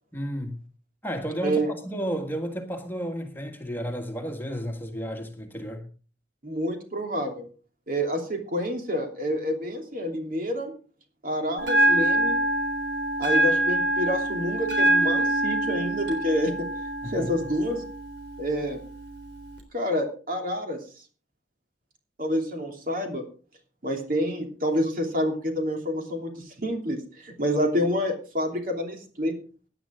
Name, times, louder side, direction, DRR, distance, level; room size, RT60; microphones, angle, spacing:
voice 1, 0.1-0.6 1.0-5.9 17.0-17.4, equal, 10° left, 1.6 m, -32 dB
voice 2, 6.4-7.4 7.9-10.7 11.2-12.4 13.2-16.7 17.0-17.8 18.4-18.8 19.7-20.8 22.2-23.2 23.8-29.4, equal, 50° right, 2.9 m, -28 dB
Bell, 11.6-19.6, right 1 dB, 90° right, 3.5 m, -25 dB
16.5 x 10.0 x 3.7 m
head